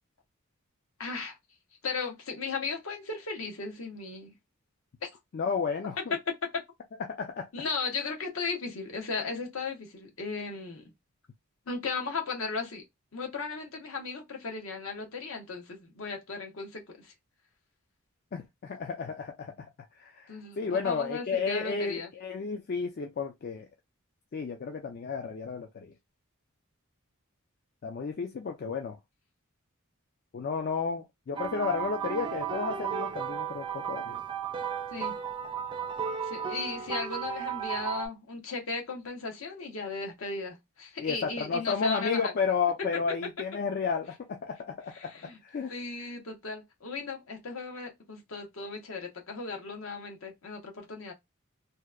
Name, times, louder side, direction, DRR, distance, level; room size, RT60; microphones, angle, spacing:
voice 1, 1.0-1.4 1.8-4.3 5.0-5.1 6.0-6.2 6.5-6.6 7.5-10.8 11.7-12.8 13.1-17.1 20.3-22.1 34.9-35.1 36.2-42.3 44.9-45.4 45.7-51.1, left 4 dB, 70° left, 0.8 m, -36 dB
voice 2, 5.3-6.0 7.1-7.5 18.3-19.7 20.0-23.7 24.3-25.9 27.8-29.0 30.3-34.2 41.0-45.1 45.4-45.7, left 5 dB, 45° left, 0.4 m, -32 dB
sound 1, 31.3-38.1, right 8 dB, 25° right, 0.3 m, -34 dB
2.8 x 2.1 x 2.3 m
head